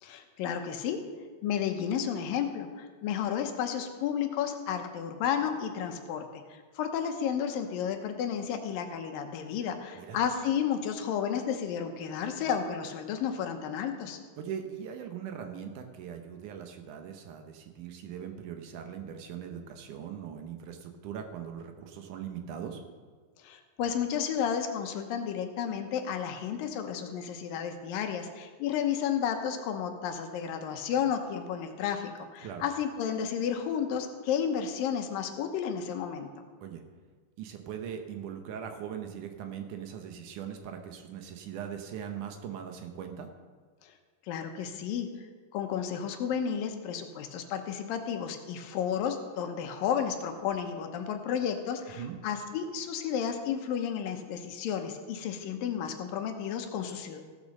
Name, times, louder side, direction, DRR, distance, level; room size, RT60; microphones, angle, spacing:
voice 1, 0.0-1.0 1.4-14.2 23.4-36.3 43.8-43.9 44.3-45.1 45.5-57.2, left 8 dB, 80° left, 6 dB, 2.7 m, -32 dB
voice 2, 14.4-22.8 32.4-32.6 36.6-36.8 37.4-43.3 51.9-52.2, right 8 dB, 70° right, 5 dB, 2.3 m, -40 dB
15.5 x 6.8 x 6.5 m, 1.5 s
omnidirectional pair, 4.0 m